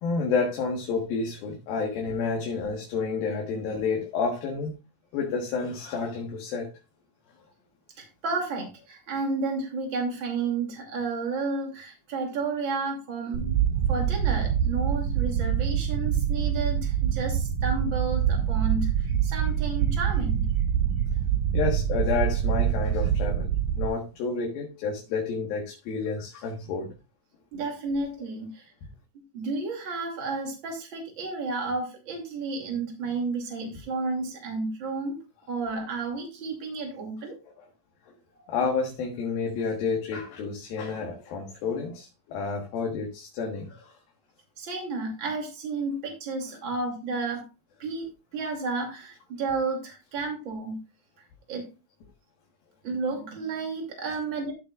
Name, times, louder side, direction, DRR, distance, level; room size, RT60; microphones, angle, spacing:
voice 1, 0.0-4.7 5.1-6.7 21.5-23.5 23.8-26.9 38.5-43.9, left 5 dB, 80° left, 0 dB, 3.4 m, -30 dB
voice 2, 8.0-13.6 13.9-20.5 27.5-28.7 29.3-35.2 35.5-37.4 38.4-38.5 44.6-47.5 47.8-50.8 51.5-51.7 52.8-54.5, right 3 dB, 35° right, 1 dB, 3.1 m, -32 dB
sound 1, 13.3-23.9, right 9 dB, 75° right, 2.0 m, -25 dB
14.5 x 7.1 x 2.5 m, 0.29 s
omnidirectional pair, 4.2 m